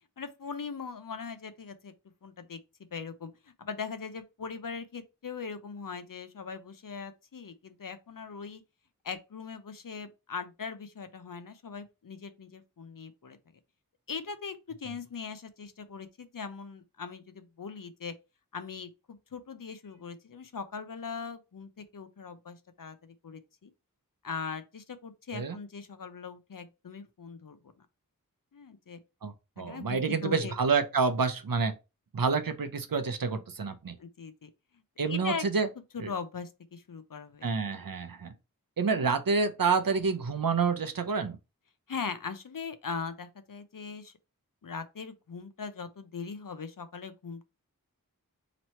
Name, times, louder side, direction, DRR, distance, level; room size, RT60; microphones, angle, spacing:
voice 1, 0.2-1.9 2.2-2.6 2.9-8.6 9.0-13.4 14.1-18.1 18.5-23.7 24.2-27.6 28.5-29.0 29.7-30.6 34.0-34.5 35.1-35.5 35.9-37.5 41.9-44.1 44.6-47.5, left 5 dB, 65° left, 0.6 m, -40 dB
voice 2, 29.2-31.7 32.1-34.0 35.0-35.7 36.0-36.1 37.4-38.3 38.8-41.4, right 5 dB, 75° right, 0.7 m, -28 dB
3.0 x 2.9 x 4.2 m
wide cardioid pair, 45°, 35 cm